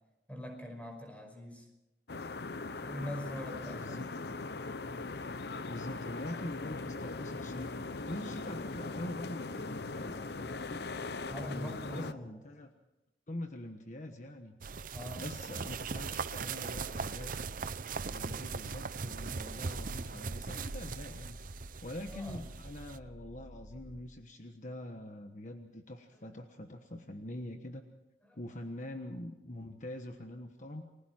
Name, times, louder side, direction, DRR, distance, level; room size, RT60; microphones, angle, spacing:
voice 1, 0.3-1.7 2.7-4.1 11.3-12.4 14.9-15.3 22.1-22.4 28.3-28.4, equal, 10° left, 4 dB, 5.2 m, -43 dB
sound 1, 2.1-12.1, left 3 dB, 65° left, 0.8 m, -40 dB
voice 2, 3.8-4.1 5.7-7.7 8.1-10.9 11.5-12.7 13.3-14.6 15.2-17.3 18.1-21.4 21.8-27.9 28.4-30.9, left 1 dB, 45° left, 5 dB, 1.3 m, -44 dB
sound 2, 14.6-23.0, right 4 dB, 50° right, 0.7 m, -39 dB
sound 3, 18.6-24.2, equal, 85° right, 3.6 m, -52 dB
29.5 x 21.0 x 4.5 m, 0.96 s
head